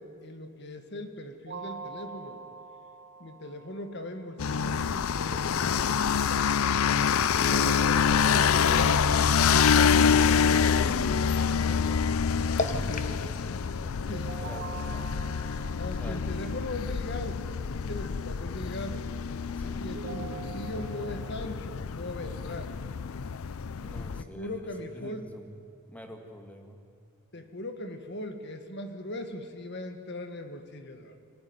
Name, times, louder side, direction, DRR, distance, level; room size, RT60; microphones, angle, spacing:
voice 1, 0.0-2.5 3.2-6.6 7.1-12.0 14.1-14.4 15.8-19.1 19.8-22.7 23.9-25.3 27.3-31.2, left 1 dB, 50° left, 7 dB, 1.8 m, -40 dB
sound 1, 1.5-4.4 7.4-10.4 14.1-17.3 19.9-21.4, right 4 dB, 50° right, 1.8 m, -44 dB
sound 2, 4.4-24.2, left 6 dB, 75° left, 0.5 m, -26 dB
sound 3, 8.8-14.6, left 1 dB, 35° left, 1.1 m, -37 dB
voice 2, 12.7-15.3 15.9-16.2 19.6-19.9 23.8-25.6 25.9-26.8, equal, 5° left, 4 dB, 1.9 m, -46 dB
25.5 x 15.0 x 9.6 m, 2.3 s
head